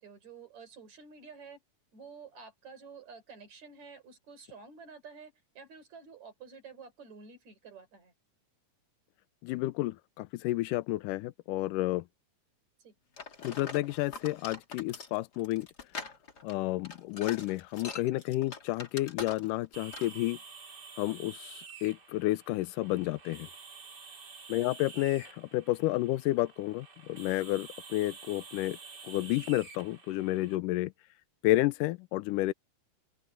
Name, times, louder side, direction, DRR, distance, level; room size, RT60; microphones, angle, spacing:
voice 1, 0.0-1.6 1.9-8.1 12.8-12.9 24.5-24.7, right 5 dB, 55° right, 6.1 m, -50 dB
voice 2, 9.4-12.0 13.4-15.7 16.4-20.4 21.0-21.5 21.8-23.5 24.5-28.8 29.0-30.9 31.4-32.5, left 17 dB, 80° left, 2.2 m, -31 dB
sound 1, 13.2-19.7 19.9-20.2, left 4 dB, 30° left, 2.6 m, -43 dB
sound 2, 19.7-30.6, right 5 dB, 30° right, 3.0 m, -49 dB
open air
omnidirectional pair, 3.8 m